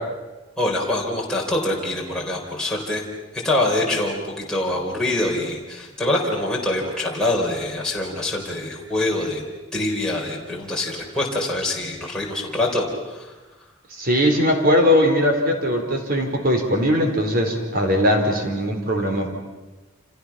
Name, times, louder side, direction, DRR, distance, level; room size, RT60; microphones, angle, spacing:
voice 1, 0.6-3.0 3.3-9.4 9.7-13.3, left 1 dB, 5° left, -4 dB, 4.1 m, -24 dB
voice 2, 14.0-19.3, equal, 50° right, 3 dB, 4.7 m, -20 dB
29.5 x 28.5 x 6.0 m, 1.2 s
head